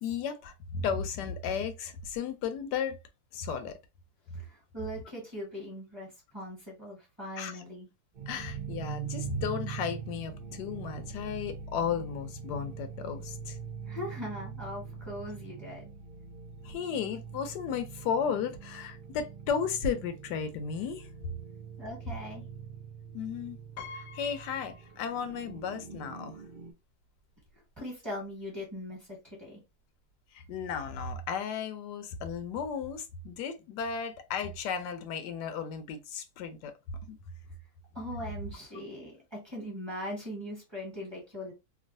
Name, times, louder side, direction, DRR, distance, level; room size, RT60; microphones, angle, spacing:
voice 1, 0.0-3.0 3.3-3.8 7.4-7.6 8.3-13.6 16.6-21.1 23.1-23.6 23.9-26.4 30.3-36.7 37.1-37.2, left 6 dB, 85° left, 1.2 m, -34 dB
voice 2, 4.3-7.9 13.9-15.9 21.8-22.4 27.5-29.6 37.9-41.5, left 1 dB, 20° right, 1.0 m, -40 dB
sound 1, 8.2-26.7, right 7 dB, 70° right, 0.5 m, -43 dB
Piano, 23.8-25.6 25.9-26.0 27.2-27.3 27.6-27.8, left 5 dB, 70° left, 0.9 m, -47 dB
3.0 x 2.3 x 2.5 m
omnidirectional pair, 1.8 m